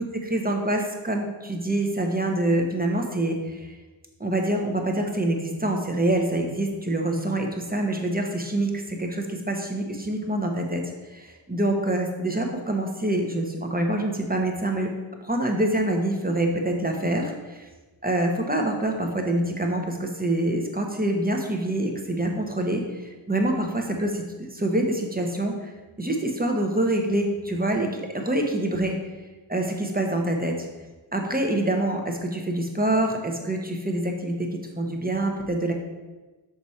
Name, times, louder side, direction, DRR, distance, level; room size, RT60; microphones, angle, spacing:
voice 1, 0.3-3.8 4.2-10.8 11.1-14.9 15.2-17.7 18.0-24.2 24.5-25.7 26.0-28.9 29.5-30.7 31.1-35.7, right 1 dB, 20° right, 2 dB, 0.9 m, -26 dB
6.0 x 4.9 x 4.2 m, 1.2 s
wide cardioid pair, 45°, 49 cm